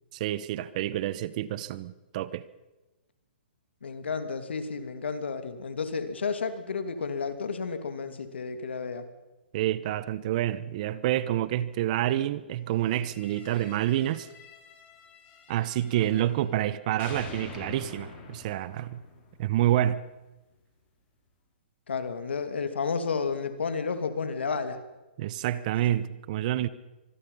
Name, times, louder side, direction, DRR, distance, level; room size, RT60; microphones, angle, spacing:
voice 1, 0.1-2.4 9.5-14.3 15.5-19.0 19.4-20.0 25.2-26.7, right 13 dB, 40° right, 1.1 m, -28 dB
voice 2, 3.8-9.1 21.9-24.8, left 5 dB, 85° left, 2.6 m, -31 dB
sound 1, 12.8-16.7 17.0-20.0, left 5 dB, 25° left, 4.8 m, -47 dB
25.5 x 20.5 x 5.6 m
hypercardioid pair, 150°, 6 cm